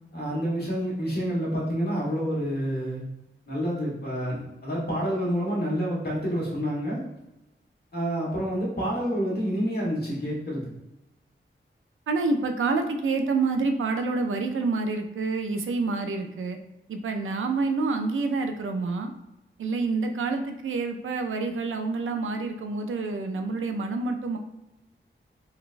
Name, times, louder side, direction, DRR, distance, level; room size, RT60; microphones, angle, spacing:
voice 1, 0.1-3.0 3.5-7.0 7.9-10.6, equal, 55° left, -5 dB, 1.3 m, -28 dB
voice 2, 12.1-16.6 16.9-19.1 19.6-24.4, right 3 dB, 85° right, 5 dB, 0.4 m, -27 dB
3.9 x 2.1 x 2.5 m, 0.93 s
wide cardioid pair, 95°, 20 cm